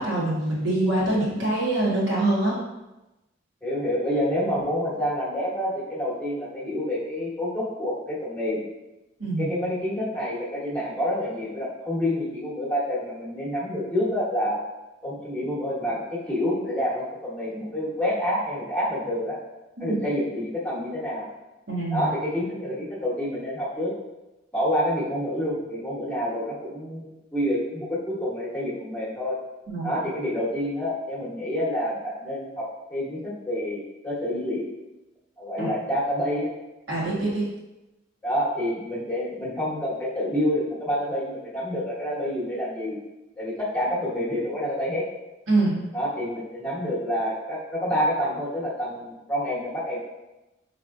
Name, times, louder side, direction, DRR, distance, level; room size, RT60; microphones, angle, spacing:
voice 1, 0.0-2.5 9.2-9.5 19.8-20.0 21.7-22.1 29.7-29.9 35.6-35.7 36.9-37.5 45.5-45.9, right 2 dB, 70° right, -6 dB, 1.4 m, -24 dB
voice 2, 3.6-8.6 9.4-14.6 15.0-19.4 19.8-21.3 21.9-23.9 24.5-29.4 29.8-34.7 35.4-36.5 38.2-43.0 43.4-45.0 45.9-50.0, equal, 10° left, -7 dB, 1.0 m, -28 dB
4.9 x 3.3 x 2.5 m, 1.0 s
head